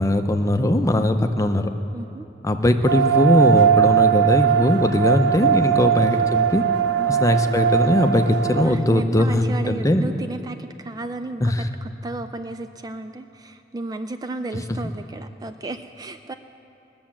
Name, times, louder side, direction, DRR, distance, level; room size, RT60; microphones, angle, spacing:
voice 1, 0.0-1.7 2.4-6.6 7.1-10.1 11.4-11.7, left 1 dB, 20° left, 7 dB, 0.6 m, -20 dB
voice 2, 1.9-2.3 7.0-7.2 8.6-11.5 11.8-16.3, right 2 dB, 20° right, 8 dB, 0.3 m, -33 dB
sound 1, 2.9-8.6, right 9 dB, 80° right, 0.6 m, -19 dB
19.5 x 7.0 x 7.4 m, 2.9 s
head